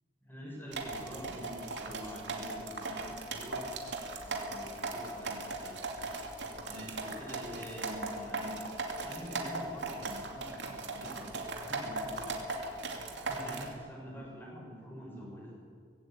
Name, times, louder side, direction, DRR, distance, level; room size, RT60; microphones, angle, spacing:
voice 1, 0.2-3.6 4.2-5.8 6.6-12.4 13.2-15.5, equal, 10° left, -3 dB, 6.5 m, -46 dB
sound 1, 0.7-13.7, right 3 dB, 85° right, 2.6 m, -38 dB
19.0 x 16.0 x 8.8 m, 2.2 s
head